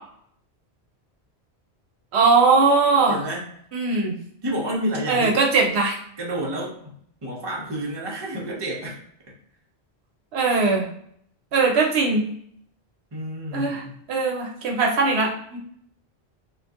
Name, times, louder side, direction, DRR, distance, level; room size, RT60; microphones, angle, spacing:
voice 1, 2.1-3.2 3.7-4.1 5.1-6.0 10.3-10.8 11.5-12.2 13.5-13.8 14.1-15.6, right 4 dB, 75° right, 0 dB, 0.9 m, -20 dB
voice 2, 3.1-3.5 4.4-5.3 6.2-6.9 7.2-9.0 13.1-13.9, equal, 25° right, -3 dB, 0.7 m, -29 dB
2.6 x 2.3 x 3.5 m, 0.65 s
omnidirectional pair, 1.1 m